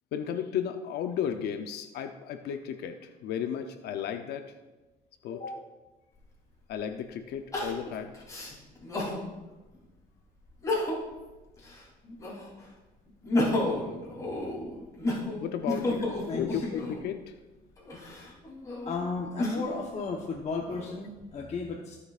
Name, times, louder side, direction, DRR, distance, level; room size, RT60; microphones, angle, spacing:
voice 1, 0.1-4.5 5.2-5.6 6.7-8.1 15.4-16.1 16.3-17.3, left 9 dB, 75° left, 7 dB, 0.7 m, -34 dB
voice 2, 5.3-5.6 15.9-16.7 18.8-22.0, left 4 dB, 40° left, 0 dB, 1.0 m, -35 dB
Crying sobbing, 6.2-6.3 7.5-9.2 9.7-9.8 10.5-11.2 11.6-12.6 13.1-17.1 17.8-19.8 20.4-21.2, left 1 dB, 20° left, 3.2 m, -32 dB
20.0 x 6.7 x 2.5 m, 1.1 s
cardioid pair, 110°, 17 cm